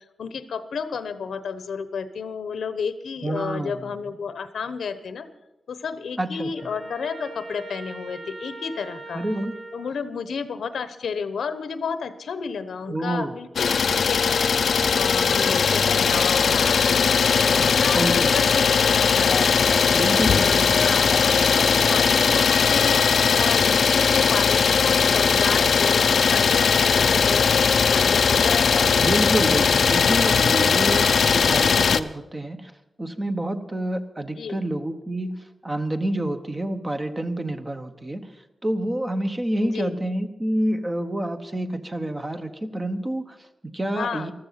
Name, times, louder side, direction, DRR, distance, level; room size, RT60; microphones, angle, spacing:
voice 1, 0.2-5.3 5.7-9.2 9.7-17.2 17.6-19.6 20.2-28.7 34.4-34.6 39.6-40.0 43.9-44.3, left 6 dB, 90° left, 11 dB, 1.0 m, -31 dB
voice 2, 3.2-3.8 6.2-6.5 9.1-9.5 12.9-13.3 17.9-18.5 19.9-20.7 29.0-32.7 33.0-35.3 35.6-38.3 38.6-44.3, right 1 dB, 20° right, 8 dB, 1.0 m, -28 dB
Trumpet, 6.6-9.9, right 2 dB, 40° right, 5.0 m, -40 dB
Idling, 13.6-32.0, left 6 dB, 65° left, 0.6 m, -19 dB
14.5 x 13.5 x 5.8 m, 0.97 s
wide cardioid pair, 125°, 0 cm